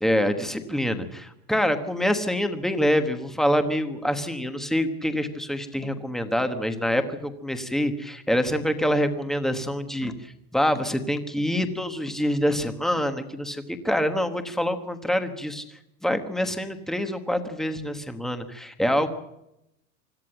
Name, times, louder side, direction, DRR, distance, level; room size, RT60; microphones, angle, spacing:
voice 1, 0.0-19.1, equal, ahead, 8 dB, 1.2 m, -26 dB
25.5 x 13.5 x 8.7 m, 0.83 s
supercardioid pair, 175°, 42 cm